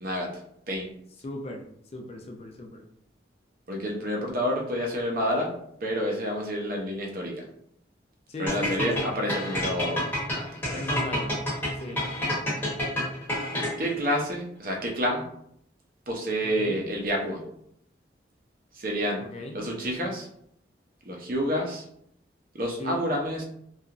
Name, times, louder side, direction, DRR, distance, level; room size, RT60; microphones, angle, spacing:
voice 1, 1.2-1.6 1.9-2.8 8.3-9.1 10.8-11.3 11.8-12.0 16.4-16.8 19.2-19.6 22.8-23.1, left 1 dB, 35° left, 3 dB, 0.4 m, -36 dB
voice 2, 3.7-5.5 5.8-7.4 8.4-10.8 13.8-15.2 16.1-17.4 18.8-19.2 19.5-20.3 21.1-21.8 22.5-23.4, equal, 50° right, 0 dB, 0.6 m, -29 dB
sound 1, 8.5-14.0, left 1 dB, 10° left, 0.8 m, -29 dB
2.8 x 2.4 x 2.4 m, 0.70 s
head